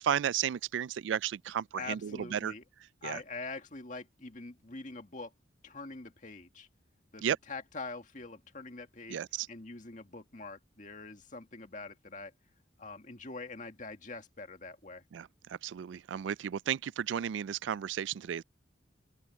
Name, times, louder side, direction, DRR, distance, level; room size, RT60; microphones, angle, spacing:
voice 1, 0.0-2.5 3.0-3.2 7.2-7.4 9.1-9.5 15.1-18.4, right 9 dB, 80° right, 0.3 m, -33 dB
voice 2, 1.7-2.6 3.0-5.3 5.6-6.7 7.1-9.2 9.5-12.3 12.8-15.0, left 3 dB, 45° left, 1.9 m, -44 dB
open air
head